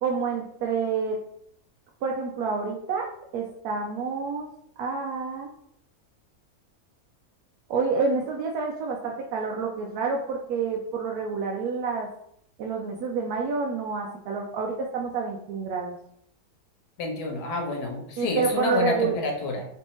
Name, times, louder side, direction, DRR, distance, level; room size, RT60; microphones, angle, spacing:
voice 1, 0.0-1.2 2.0-4.5 4.8-5.5 7.7-12.1 12.6-16.0 18.2-19.2, right 5 dB, 80° right, 0 dB, 1.1 m, -28 dB
voice 2, 17.0-19.6, left 3 dB, 85° left, 2 dB, 1.3 m, -28 dB
3.3 x 3.1 x 3.0 m, 0.70 s
omnidirectional pair, 1.6 m